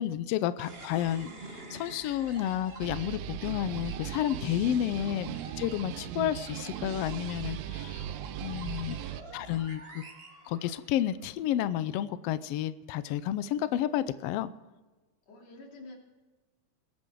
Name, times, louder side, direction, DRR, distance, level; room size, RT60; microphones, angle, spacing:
voice 1, 0.0-8.1 8.4-9.0 9.3-10.0 10.5-14.5, left 11 dB, 90° left, 14 dB, 1.3 m, -31 dB
sound 1, 0.6-11.2, right 3 dB, 40° right, 0.8 m, -47 dB
sound 2, 2.8-9.2, right 13 dB, 90° right, 1.4 m, -39 dB
voice 2, 7.5-7.8 8.2-8.8 15.3-16.0, left 2 dB, 55° left, 0 dB, 3.8 m, -51 dB
21.0 x 8.9 x 4.6 m, 1.2 s
omnidirectional pair, 3.6 m